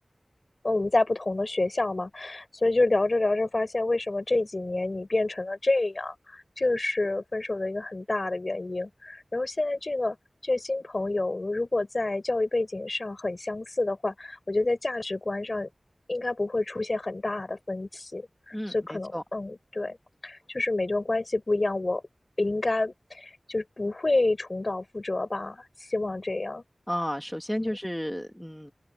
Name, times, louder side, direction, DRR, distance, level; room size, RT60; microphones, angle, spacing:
voice 1, 0.6-10.2 10.4-15.7 16.1-20.0 20.2-22.0 22.4-26.6 27.6-27.8, left 2 dB, 50° left, 4.1 m, -28 dB
voice 2, 18.5-19.2 26.9-28.7, equal, 5° left, 1.8 m, -32 dB
open air
wide cardioid pair, 50°, 0 cm